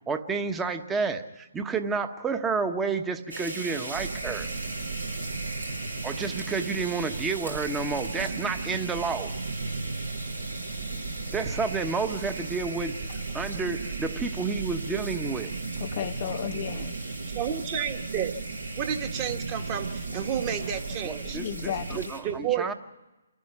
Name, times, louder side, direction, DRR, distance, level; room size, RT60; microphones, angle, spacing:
voice 1, 0.1-4.5 6.0-9.3 11.3-13.0 13.3-15.5 21.0-22.7, right 4 dB, 10° right, 1.1 m, -30 dB
sound 1, 3.3-22.2, right 2 dB, 90° right, 7.7 m, -39 dB
sound 2, 3.9-22.0, right 4 dB, 65° right, 2.5 m, -36 dB
voice 2, 15.8-17.0 21.2-22.1, left 11 dB, 35° left, 0.7 m, -34 dB
voice 3, 17.3-18.3 18.8-21.4 21.9-22.7, right 9 dB, 25° right, 1.7 m, -31 dB
28.5 x 11.5 x 9.8 m
figure-of-eight pair, 140°, 0 cm